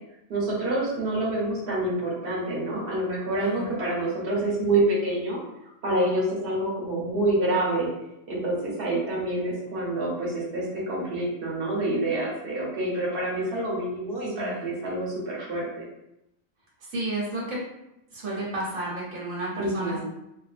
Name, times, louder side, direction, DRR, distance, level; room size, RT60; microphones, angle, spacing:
voice 1, 0.3-5.4 5.8-7.9 8.3-15.9 19.6-20.0, right 1 dB, 45° right, -6 dB, 1.1 m, -27 dB
voice 2, 16.8-17.6 18.1-20.0, right 1 dB, 80° right, -5 dB, 1.3 m, -32 dB
3.3 x 2.6 x 2.5 m, 0.87 s
omnidirectional pair, 1.4 m